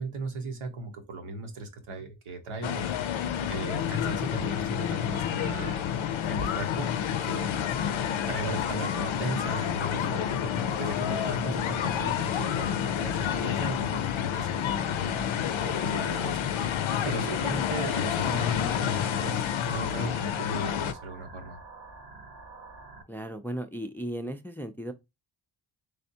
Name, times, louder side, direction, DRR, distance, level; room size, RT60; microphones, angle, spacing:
voice 1, 0.0-5.9 6.3-8.0 8.3-21.6, right 1 dB, 90° right, 1.0 m, -37 dB
sound 1, 2.6-20.9, left 9 dB, 75° left, 0.5 m, -29 dB
sound 2, 18.0-23.0, right 3 dB, 60° right, 0.9 m, -47 dB
voice 2, 23.1-24.9, right 1 dB, 5° left, 0.4 m, -36 dB
3.4 x 3.3 x 2.7 m
cardioid pair, 55°, 48 cm